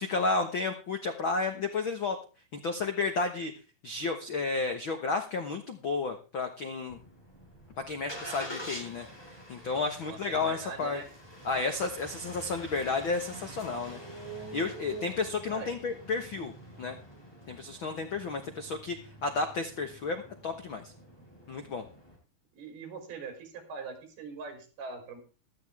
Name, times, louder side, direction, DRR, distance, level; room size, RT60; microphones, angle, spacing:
voice 1, 0.0-2.2 2.5-3.5 3.8-7.0 7.9-9.1 9.5-11.0 11.4-14.0 14.5-16.5 16.8-17.0 17.5-20.9 21.5-21.8, left 3 dB, 80° left, 6 dB, 1.1 m, -32 dB
Engine starting, 6.9-22.2, right 1 dB, 5° left, 5.0 m, -46 dB
voice 2, 10.1-11.1 15.5-15.7 22.5-25.2, right 4 dB, 85° right, 5 dB, 5.7 m, -42 dB
15.5 x 13.0 x 3.5 m, 0.35 s
omnidirectional pair, 4.3 m